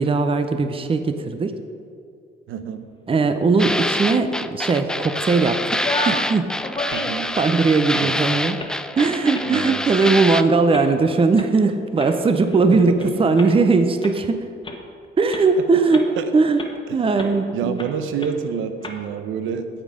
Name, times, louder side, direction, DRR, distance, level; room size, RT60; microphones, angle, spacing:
voice 1, 0.0-1.5 3.1-6.5 7.4-8.6 9.0-14.4 15.2-16.1 16.3-16.6 16.9-17.8, right 4 dB, 30° right, 8 dB, 0.7 m, -19 dB
voice 2, 2.5-2.9 6.9-7.4 8.0-8.2 9.5-9.8 12.7-13.4 15.9-16.3 16.9-17.0 17.5-19.7, right 7 dB, 85° right, 9 dB, 0.7 m, -28 dB
sound 1, 3.6-10.4, left 1 dB, 5° left, 0.3 m, -26 dB
sound 2, 5.7-6.3 6.6-7.3 7.8-8.1 8.6-8.8 9.3-9.6 10.0-10.1 10.7-10.9 11.4-11.5 12.0-13.1 13.4-13.5 14.0-14.1 14.6-14.8 15.3-15.4 15.9-16.2 16.6-16.7 17.2-17.4 17.8-17.9 18.2-18.3 18.8-19.0, left 2 dB, 25° left, 1.3 m, -31 dB
8.8 x 8.3 x 5.1 m, 2.3 s
cardioid pair, 90°, 20 cm